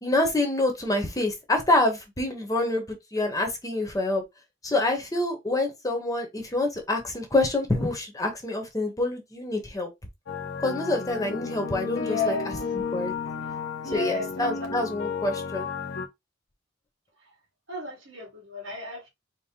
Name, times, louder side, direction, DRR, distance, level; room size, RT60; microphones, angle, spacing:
voice 1, 0.0-2.8 3.1-4.2 4.6-9.9 10.6-12.3 12.9-13.1 13.9-15.7, left 2 dB, 15° left, 0.8 m, -26 dB
sound 1, 10.3-16.1, left 5 dB, 70° left, 0.8 m, -33 dB
voice 2, 11.9-12.5 13.8-14.7 17.7-19.1, left 4 dB, 70° right, 1.9 m, -33 dB
4.4 x 2.0 x 3.6 m
head